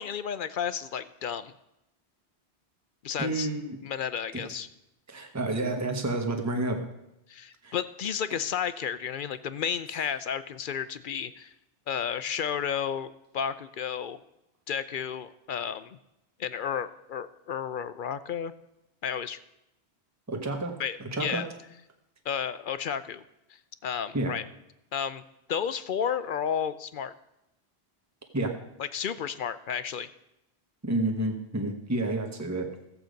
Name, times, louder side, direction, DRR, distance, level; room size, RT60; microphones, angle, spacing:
voice 1, 0.0-1.5 3.0-3.5 3.8-4.7 7.3-11.5 11.9-14.2 14.7-16.0 16.4-18.5 19.0-19.4 20.8-21.5 22.3-23.2 23.8-24.4 24.9-25.2 25.5-27.1 28.8-30.1, left 8 dB, 60° left, 13 dB, 0.6 m, -32 dB
voice 2, 3.2-3.8 5.1-6.8 7.6-7.7 20.3-20.7 21.0-21.4 24.1-24.3 28.3-28.5 30.8-32.7, right 2 dB, 15° right, 3 dB, 1.1 m, -29 dB
14.5 x 8.1 x 5.1 m, 0.87 s
omnidirectional pair, 1.1 m